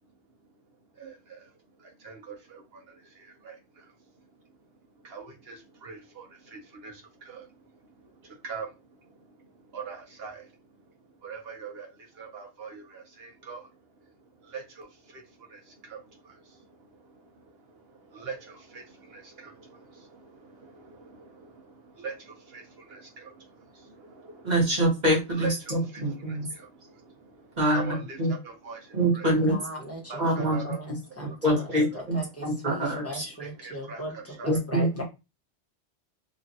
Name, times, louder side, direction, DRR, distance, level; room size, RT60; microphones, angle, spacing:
voice 1, 1.0-1.4 2.0-2.6 3.4-3.5 5.0-6.9 7.3-7.5 8.4-8.7 9.7-10.4 11.2-11.9 12.2-13.7 14.5-14.9 15.5-15.6 15.9-16.0 18.1-18.8 19.1-19.5 20.6-21.2 22.0-22.6 22.9-23.3 24.1-24.6 25.3-26.7 27.7-28.8 29.1-29.3 30.1-30.8 31.6-31.7 31.9-32.0 33.4-34.6, right 5 dB, 65° right, 0.9 m, -41 dB
voice 2, 24.4-26.5 27.6-28.3 28.9-29.6 30.2-30.6 31.4-33.2 34.4-35.0, right 1 dB, 40° right, 1.2 m, -25 dB
voice 3, 29.2-31.7 31.9-34.1 34.4-35.0, equal, 15° left, 1.0 m, -39 dB
3.1 x 2.3 x 2.6 m
omnidirectional pair, 1.2 m